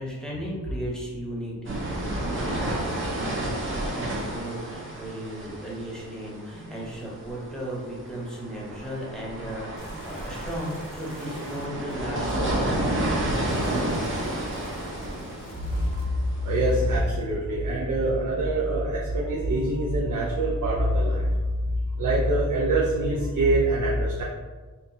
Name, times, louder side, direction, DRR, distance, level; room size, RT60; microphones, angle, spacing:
voice 1, 0.0-13.3, equal, ahead, -5 dB, 0.9 m, -36 dB
sound 1, 1.6-17.0, right 1 dB, 35° right, 0.8 m, -31 dB
sound 2, 9.8-16.0, left 1 dB, 75° left, 0.7 m, -44 dB
voice 2, 15.5-21.4 22.0-24.2, right 1 dB, 65° right, -5 dB, 0.6 m, -24 dB
4.4 x 2.4 x 2.7 m, 1.4 s
wide cardioid pair, 105°, 33 cm